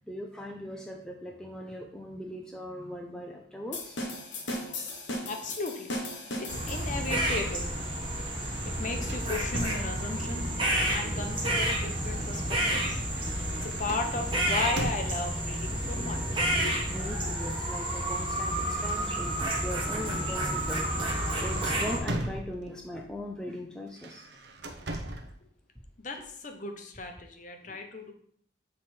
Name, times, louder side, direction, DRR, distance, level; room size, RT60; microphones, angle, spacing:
voice 1, 0.1-4.0 15.8-15.9 16.9-24.3 27.6-27.8, equal, 5° left, 1 dB, 0.4 m, -40 dB
sound 1, 3.7-7.2, left 1 dB, 65° left, 1.1 m, -37 dB
voice 2, 5.1-5.9 6.4-7.7 8.6-10.4 10.9-13.0 13.6-16.8 17.2-17.3 26.0-28.1, left 3 dB, 40° left, 5 dB, 0.7 m, -36 dB
sound 2, 6.5-22.0, right 1 dB, 25° right, 1.1 m, -30 dB
sound 3, 7.3-10.4 11.3-15.5 16.6-16.9 17.2-19.5 20.0-20.2 20.6-23.0 23.9-25.4, right 1 dB, 55° right, 0.7 m, -41 dB
7.4 x 3.3 x 4.2 m, 0.64 s
head